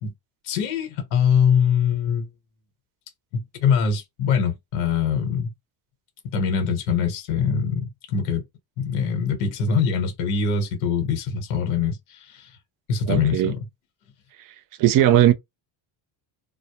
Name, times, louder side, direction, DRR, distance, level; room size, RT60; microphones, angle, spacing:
voice 1, 0.4-2.3 3.3-5.5 6.2-8.4 8.8-12.5 12.9-13.6, left 6 dB, 75° left, 1.1 m, -23 dB
voice 2, 13.1-13.5 14.8-15.3, right 12 dB, 45° right, 0.5 m, -17 dB
2.2 x 2.0 x 2.9 m
cardioid pair, 125°, 49 cm